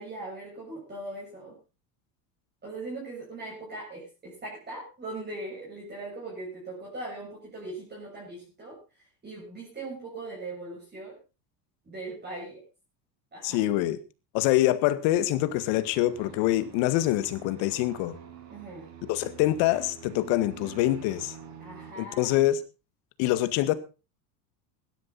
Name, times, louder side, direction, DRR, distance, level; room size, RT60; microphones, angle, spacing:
voice 1, 0.0-1.5 2.6-8.8 9.2-11.2 11.8-12.6 13.3-13.6 18.5-18.9 21.6-22.5, right 2 dB, 20° right, 7.5 m, -40 dB
voice 2, 13.4-14.0 14.3-18.2 19.1-21.3 22.0-22.6 23.2-23.7, left 15 dB, 60° left, 1.9 m, -25 dB
sound 1, 15.2-21.9, right 7 dB, 85° right, 5.1 m, -47 dB
16.5 x 12.0 x 4.2 m
supercardioid pair, 115°, 49 cm